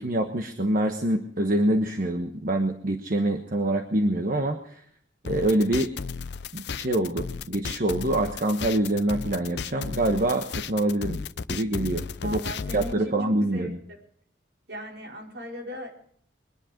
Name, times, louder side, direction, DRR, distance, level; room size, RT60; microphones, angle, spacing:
voice 1, 0.0-4.8 5.2-5.9 6.5-11.2 11.5-12.4 12.7-13.8, right 1 dB, 50° right, 4 dB, 1.2 m, -25 dB
sound 1, 5.2-12.9, left 5 dB, 65° left, 0.6 m, -34 dB
voice 2, 12.2-13.2 13.5-14.0 14.7-15.9, equal, 70° right, -2 dB, 5.2 m, -39 dB
22.5 x 10.5 x 5.2 m, 0.62 s
head